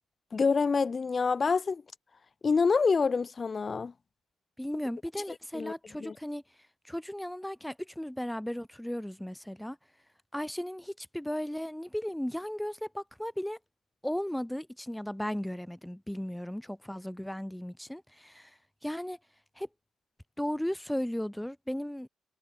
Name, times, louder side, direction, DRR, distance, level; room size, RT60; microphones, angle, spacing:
voice 1, 0.3-1.8 2.4-3.9 5.5-5.7 6.0-6.1, left 5 dB, 35° left, 0.9 m, -26 dB
voice 2, 4.6-6.4 6.8-9.8 10.3-13.6 14.0-18.5 18.8-19.2 19.6-19.7 20.4-22.1, equal, 5° left, 1.2 m, -35 dB
cardioid pair, 90°, 0 cm